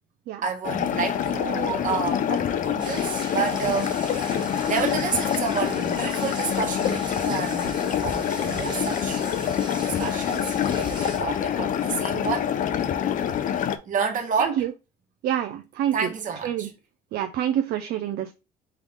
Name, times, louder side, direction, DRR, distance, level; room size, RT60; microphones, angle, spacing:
voice 1, 0.4-9.2 9.8-12.5 13.9-14.7 15.9-16.7, right 6 dB, 50° right, 1.3 m, -30 dB
sound 1, 0.6-13.8, left 9 dB, 50° left, 0.5 m, -26 dB
sound 2, 2.8-11.2, right 3 dB, 25° right, 1.3 m, -40 dB
voice 2, 14.4-14.7 15.2-16.0 16.4-16.7 17.1-18.3, right 10 dB, 65° right, 0.5 m, -26 dB
3.7 x 3.2 x 3.5 m
cardioid pair, 110°, 17 cm